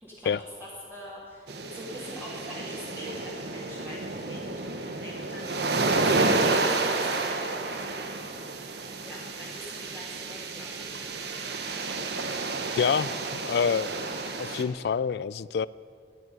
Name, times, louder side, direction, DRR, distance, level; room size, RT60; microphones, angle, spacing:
voice 1, 0.0-7.8 9.0-11.2, left 1 dB, 10° right, 2.2 m, -44 dB
sound 1, 1.5-14.6, right 3 dB, 70° right, 1.2 m, -30 dB
voice 2, 12.7-13.1 13.4-14.1 14.4-15.7, left 6 dB, 65° left, 0.3 m, -27 dB
11.5 x 9.2 x 9.8 m
head